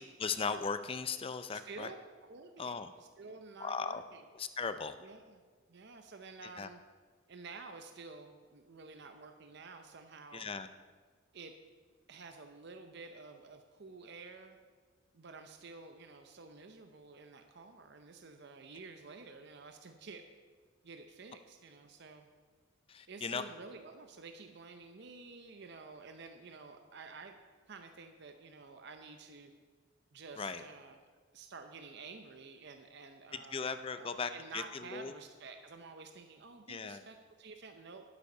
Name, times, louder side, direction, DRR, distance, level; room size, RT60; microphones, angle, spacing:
voice 1, 0.0-1.9 2.6-2.9 3.6-4.0 4.4-5.0 6.6-6.7 10.3-10.7 22.9-23.4 30.4-30.6 33.5-34.6 34.9-35.1 36.7-37.0, left 5 dB, 25° left, 11 dB, 0.4 m, -37 dB
voice 2, 1.5-2.0 2.2-4.3 5.0-5.4 5.7-6.8 7.3-10.5 11.3-11.5 12.1-14.6 15.1-20.2 20.8-22.3 23.1-27.4 27.7-29.5 30.1-31.0 31.3-38.0, right 4 dB, 55° right, 6 dB, 0.6 m, -51 dB
11.0 x 8.3 x 5.4 m, 1.5 s
head